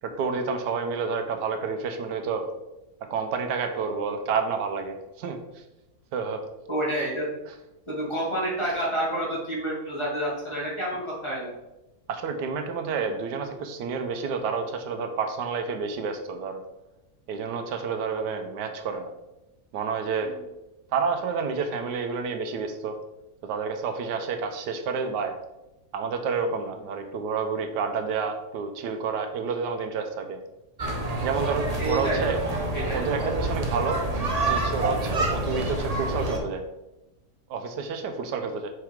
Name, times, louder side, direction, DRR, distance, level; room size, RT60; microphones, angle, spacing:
voice 1, 0.0-2.4 3.1-5.4 6.1-6.4 12.1-16.6 17.3-19.1 19.7-20.3 20.9-22.9 23.4-25.3 25.9-30.4 31.2-32.4 32.9-34.0 34.4-36.6 37.5-38.7, right 5 dB, 85° right, 6 dB, 1.3 m, -29 dB
voice 2, 6.7-7.3 7.9-11.5 20.2-20.4 31.8-32.3 32.7-33.5, right 1 dB, 15° left, -6 dB, 2.3 m, -29 dB
sound 1, 30.8-36.4, right 2 dB, 30° right, 0.7 m, -28 dB
7.7 x 4.8 x 3.5 m, 0.96 s
omnidirectional pair, 1.8 m